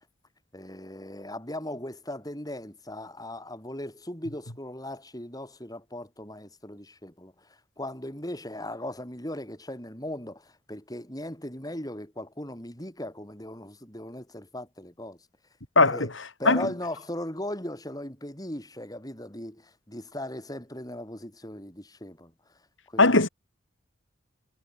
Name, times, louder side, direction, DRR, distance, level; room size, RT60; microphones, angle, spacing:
voice 1, 0.5-15.2 15.8-16.1 16.4-22.3 22.9-23.1, left 1 dB, 20° left, 7.7 m, -38 dB
voice 2, 15.7-16.1 16.4-16.7 23.0-23.3, left 3 dB, 85° left, 4.9 m, -19 dB
head